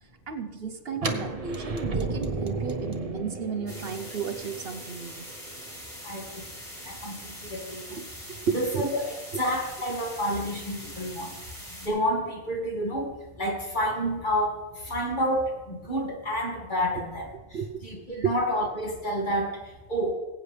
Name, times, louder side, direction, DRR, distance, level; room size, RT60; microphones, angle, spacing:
voice 1, 0.3-5.2 8.0-8.8 17.5-18.3, right 6 dB, 60° right, 7 dB, 1.0 m, -33 dB
sound 1, 1.0-6.8, right 3 dB, 35° right, 0.9 m, -34 dB
sound 2, 3.7-11.9, equal, 15° left, 3.4 m, -43 dB
voice 2, 6.0-6.4 6.9-8.0 8.5-11.3 11.8-13.1 13.4-14.6 14.9-19.6 19.9-20.1, equal, 40° left, -1 dB, 2.4 m, -29 dB
20.5 x 8.8 x 3.3 m, 1.0 s
omnidirectional pair, 1.2 m